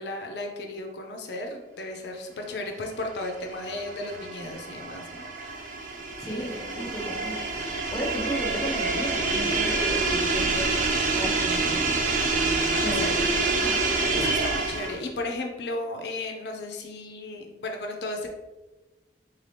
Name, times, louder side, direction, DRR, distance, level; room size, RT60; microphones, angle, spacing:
voice 1, 0.0-5.9 6.3-7.0 12.8-13.1 14.1-18.3, left 2 dB, 65° left, 3 dB, 0.5 m, -35 dB
sound 1, 3.2-15.1, right 3 dB, 45° right, 0.5 m, -27 dB
voice 2, 6.2-7.5 7.9-10.7 11.1-11.9 12.7-13.8, equal, 20° left, -2 dB, 0.6 m, -35 dB
3.9 x 2.7 x 3.3 m, 1.1 s
head